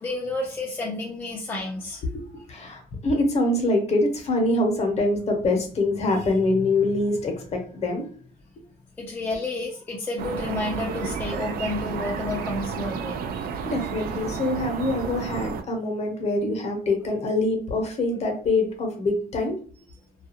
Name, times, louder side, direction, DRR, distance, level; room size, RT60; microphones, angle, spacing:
voice 1, 0.0-2.0 2.3-2.4 9.0-13.2, left 2 dB, 10° left, -2 dB, 0.5 m, -30 dB
voice 2, 2.1-8.1 13.7-19.6, left 2 dB, 40° left, 2 dB, 0.9 m, -24 dB
sound 1, 10.2-15.6, right 6 dB, 60° right, 0.4 m, -31 dB
2.4 x 2.4 x 2.8 m, 0.42 s
cardioid pair, 110°, 17 cm